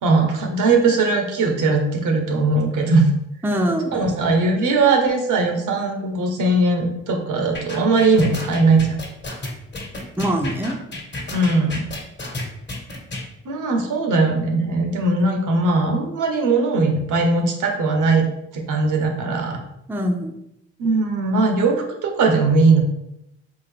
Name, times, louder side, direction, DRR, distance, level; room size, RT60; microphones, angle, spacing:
voice 1, 0.0-3.1 3.9-9.0 11.3-11.9 13.4-19.6 20.8-22.8, right 3 dB, 65° right, 3 dB, 0.8 m, -19 dB
voice 2, 3.4-4.1 10.2-10.8 19.9-20.3, equal, 5° right, 4 dB, 0.5 m, -23 dB
sound 1, 7.5-13.2, left 2 dB, 35° left, 1.2 m, -31 dB
3.7 x 2.4 x 3.4 m, 0.83 s
hypercardioid pair, 45°, 33 cm